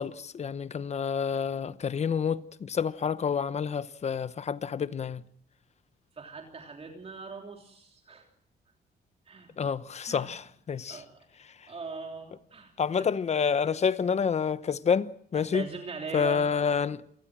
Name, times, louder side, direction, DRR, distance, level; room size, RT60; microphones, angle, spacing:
voice 1, 0.0-5.2 9.6-11.0 11.4-11.7 12.8-15.7 16.1-17.0, left 6 dB, 40° left, 1.0 m, -28 dB
voice 2, 6.2-8.3 9.3-9.5 10.1-10.3 10.9-11.1 11.7-12.7 13.0-13.1 15.3-16.5, right 4 dB, 35° right, 3.2 m, -40 dB
27.5 x 19.5 x 6.2 m
cardioid pair, 125°, 17 cm